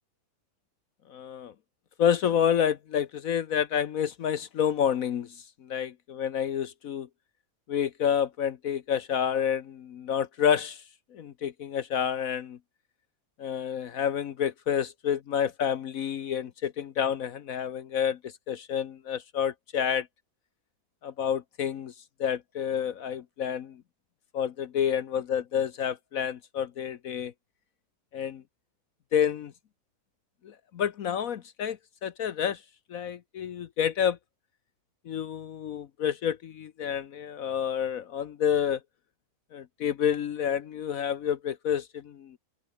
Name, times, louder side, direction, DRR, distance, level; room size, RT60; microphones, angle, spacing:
voice 1, 1.1-1.5 2.0-5.3 5.6-7.1 7.7-10.8 11.1-12.6 13.4-20.1 21.0-21.9 22.2-23.8 24.3-27.3 28.1-28.4 29.1-29.5 30.4-32.6 32.9-34.2 35.1-38.8 39.5-42.4, left 8 dB, 65° left, 1.3 m, -29 dB
open air
omnidirectional pair, 1.6 m